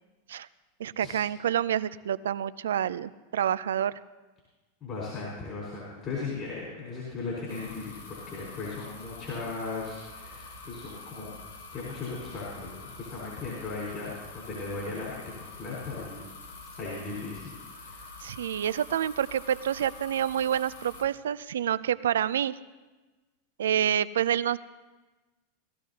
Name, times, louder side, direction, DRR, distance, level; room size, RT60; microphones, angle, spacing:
voice 1, 0.8-4.0 18.2-22.6 23.6-24.6, right 10 dB, 80° right, 16 dB, 0.4 m, -28 dB
voice 2, 4.8-8.0 8.3-11.3 11.7-16.2 16.8-17.4 17.8-18.1, left 3 dB, 35° left, -5 dB, 4.7 m, -37 dB
sound 1, 7.5-21.0, left 3 dB, 75° left, 1.5 m, -46 dB
18.5 x 12.5 x 2.8 m, 1.2 s
hypercardioid pair, 105°, 0 cm